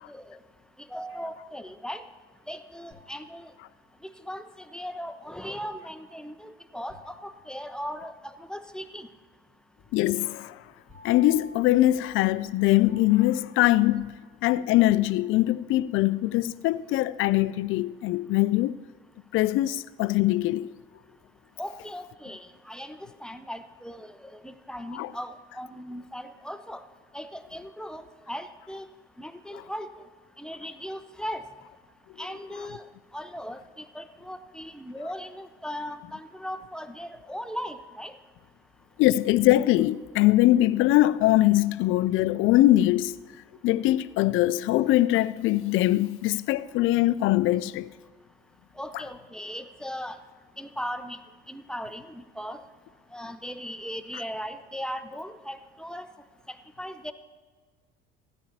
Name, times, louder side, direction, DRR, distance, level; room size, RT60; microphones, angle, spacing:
voice 1, 0.1-0.4 0.9-2.0 2.5-3.5 4.0-9.1 21.6-26.8 27.1-28.9 29.2-29.9 30.4-31.4 32.2-32.8 33.1-38.1 48.8-50.2 50.6-51.2 51.5-52.6 53.1-56.1 56.5-57.1, equal, 5° left, 0.6 m, -38 dB
sound 1, 2.9-4.1 6.9-8.5 10.9-14.5 14.9-15.8, left 4 dB, 20° right, 2.1 m, -53 dB
voice 2, 9.9-10.6 11.0-14.2 14.4-18.8 19.3-20.8 24.9-25.1 39.0-43.2 43.6-47.9, left 15 dB, 45° left, 0.4 m, -22 dB
15.5 x 9.6 x 2.9 m
figure-of-eight pair, 60°, 29 cm